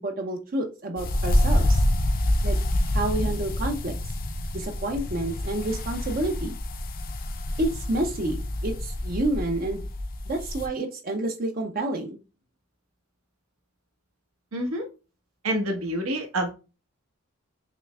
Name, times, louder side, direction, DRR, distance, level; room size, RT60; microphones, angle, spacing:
voice 1, 0.0-1.8 2.4-2.6 2.9-4.0 4.5-6.6 7.6-9.8 10.3-12.2, right 1 dB, 40° right, 3 dB, 0.6 m, -29 dB
sound 1, 1.0-10.7, left 1 dB, 40° left, 0.5 m, -27 dB
voice 2, 14.5-14.9 15.4-16.5, right 1 dB, 80° right, 3 dB, 1.3 m, -27 dB
5.8 x 3.1 x 2.3 m, 0.31 s
head